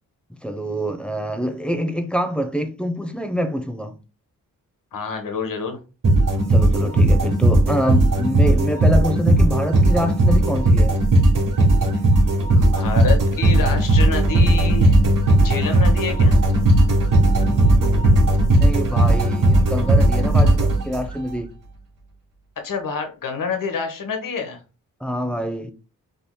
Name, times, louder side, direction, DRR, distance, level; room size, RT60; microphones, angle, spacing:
voice 1, 0.4-4.0 6.4-11.0 17.3-18.3 18.6-20.6 20.8-21.5 25.0-25.7, equal, 5° left, 0.8 m, -25 dB
voice 2, 4.9-5.8 12.5-14.9 15.4-16.4 22.6-24.6, left 5 dB, 60° left, 1.1 m, -28 dB
sound 1, 6.0-21.3, right 1 dB, 55° right, 1.4 m, -16 dB
5.1 x 2.7 x 2.3 m
supercardioid pair, 45°, 37 cm